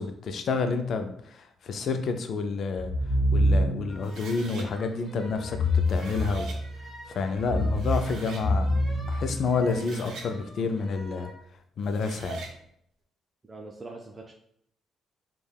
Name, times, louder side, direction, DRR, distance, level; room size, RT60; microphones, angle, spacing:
voice 1, 0.0-2.9 3.3-6.5 7.1-8.8 9.1-11.3 11.8-12.4, left 4 dB, 60° left, 7 dB, 0.3 m, -29 dB
sound 1, 2.8-4.0 5.4-6.8 7.3-9.9, left 1 dB, 40° left, 1.1 m, -26 dB
Violin sound A string sckratching, 3.9-11.4, equal, 15° left, 1.1 m, -48 dB
sound 2, 4.0-4.7 5.7-6.6 7.4-7.5 7.8-8.5 9.5-10.3 11.8-12.5, right 4 dB, 80° right, 0.5 m, -42 dB
voice 2, 13.5-14.3, right 2 dB, 25° right, 0 dB, 0.3 m, -42 dB
3.2 x 2.2 x 2.2 m, 0.70 s
cardioid pair, 90°, 0 cm